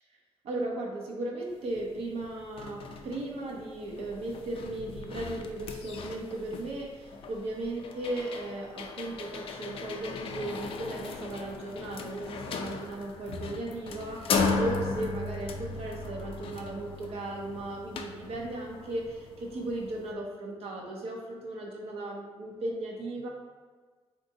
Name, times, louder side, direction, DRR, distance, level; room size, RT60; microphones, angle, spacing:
voice 1, 0.4-23.3, right 1 dB, 75° right, -1 dB, 0.7 m, -36 dB
sound 1, 1.7-1.8 2.2-20.1, left 4 dB, 65° left, 0.4 m, -37 dB
3.5 x 2.6 x 2.7 m, 1.4 s
cardioid pair, 115°, 10 cm